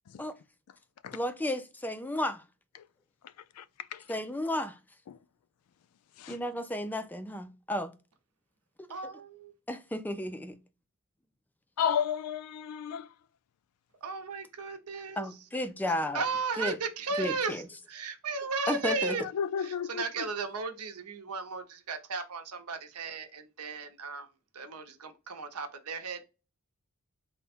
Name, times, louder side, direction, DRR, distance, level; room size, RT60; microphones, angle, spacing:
voice 1, 1.1-2.4 4.1-4.8 6.3-7.9 9.7-10.6 15.2-16.2 16.6-16.8 17.2-17.6 18.7-19.2, left 1 dB, 10° left, 0.3 m, -33 dB
voice 2, 8.9-9.5 14.0-15.3 16.1-17.6 17.9-19.2 19.6-24.3 24.5-26.2, right 4 dB, 90° right, 0.7 m, -35 dB
voice 3, 11.8-13.1 19.1-20.0, left 8 dB, 85° left, 0.3 m, -32 dB
3.4 x 2.1 x 4.2 m
head